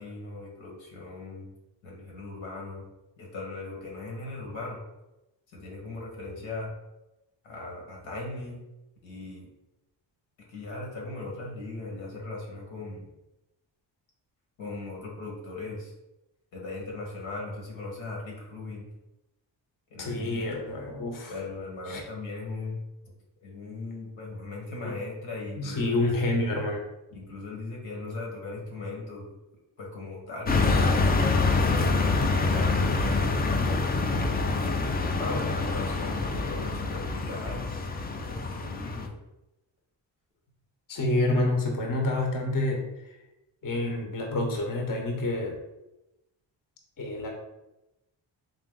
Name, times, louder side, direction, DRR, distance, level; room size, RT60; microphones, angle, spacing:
voice 1, 0.0-1.5 1.8-2.8 3.2-4.8 5.5-6.7 7.4-8.6 9.0-9.5 10.5-13.1 14.6-15.9 16.5-18.9 19.9-20.5 21.3-23.1 23.4-26.4 27.1-29.3 29.8-31.1 31.4-33.3 33.7-34.4 35.2-39.1, left 2 dB, 85° left, -2 dB, 1.3 m, -38 dB
voice 2, 20.0-21.4 21.9-22.0 24.8-25.0 25.6-26.8 40.9-43.1 43.6-45.6 47.0-47.3, left 2 dB, 45° left, 2 dB, 0.9 m, -28 dB
sound 1, 30.5-39.1, left 3 dB, 20° left, 0.3 m, -26 dB
3.8 x 2.5 x 3.7 m, 0.95 s
cardioid pair, 70°, 46 cm